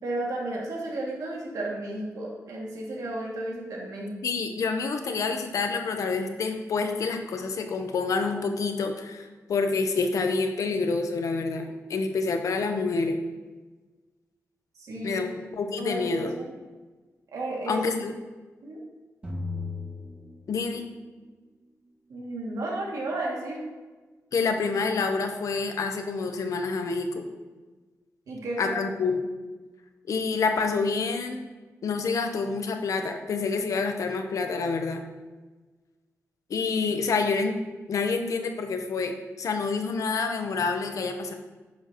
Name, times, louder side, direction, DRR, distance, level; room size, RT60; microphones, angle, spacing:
voice 1, 0.0-4.1 14.8-15.3 15.8-16.5 17.3-17.8 18.6-18.8 22.1-23.6 28.3-28.8, right 1 dB, 85° right, -3 dB, 2.4 m, -33 dB
voice 2, 4.2-13.2 15.0-16.3 17.7-18.1 20.5-20.9 24.3-27.3 28.6-29.3 30.1-31.4 31.8-35.0 36.5-37.6 37.9-41.3, left 4 dB, 70° left, 5 dB, 1.0 m, -28 dB
sound 1, 19.2-21.0, left 3 dB, 20° right, 2.1 m, -36 dB
10.5 x 7.2 x 3.0 m, 1.3 s
wide cardioid pair, 150°, 6 cm